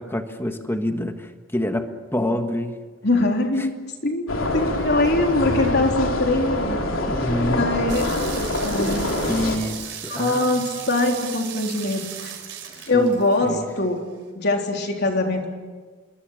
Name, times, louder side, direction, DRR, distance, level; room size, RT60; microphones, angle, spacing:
voice 1, 0.0-2.8 3.6-3.7 7.1-7.7 9.2-10.7 12.8-13.1 13.4-13.7, left 1 dB, 10° left, 6 dB, 1.6 m, -27 dB
voice 2, 3.0-3.7 4.0-4.3 4.5-6.8 7.6-8.0 8.4-9.1 10.1-12.3 12.9-14.0 14.4-15.5, left 2 dB, 55° left, 2 dB, 3.8 m, -22 dB
sound 1, 4.3-9.6, left 1 dB, 85° left, 3.4 m, -25 dB
sound 2, 7.9-13.7, right 9 dB, 65° right, 5.4 m, -36 dB
27.0 x 22.5 x 6.5 m, 1.4 s
head